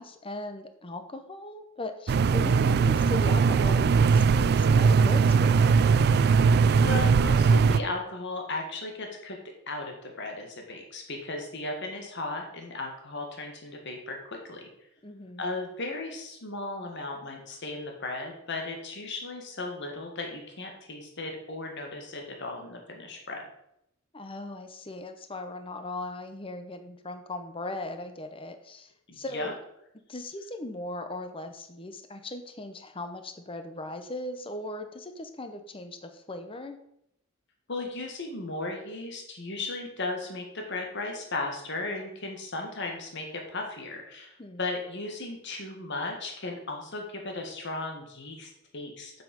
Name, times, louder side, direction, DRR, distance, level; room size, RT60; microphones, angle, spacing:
voice 1, 0.0-5.9 15.0-15.4 24.1-29.6 30.1-36.8 44.4-44.6, left 2 dB, 25° left, 8 dB, 0.9 m, -38 dB
sound 1, 2.1-7.8, right 5 dB, 50° right, 0.3 m, -20 dB
voice 2, 6.8-9.4 9.7-14.7 15.4-23.4 29.1-29.5 37.7-49.2, left 2 dB, 60° left, 2 dB, 1.8 m, -36 dB
7.6 x 7.6 x 5.3 m, 0.78 s
head